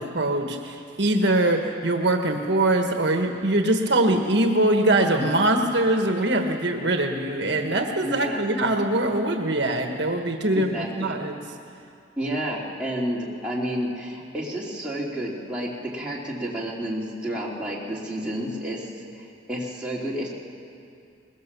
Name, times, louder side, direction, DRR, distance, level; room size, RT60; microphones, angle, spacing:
voice 1, 0.0-10.7 11.0-11.4, right 1 dB, 60° right, 4 dB, 1.4 m, -22 dB
voice 2, 8.0-8.4 10.6-11.1 12.2-20.3, equal, 5° right, -6 dB, 3.0 m, -30 dB
22.5 x 21.0 x 6.9 m, 2.4 s
head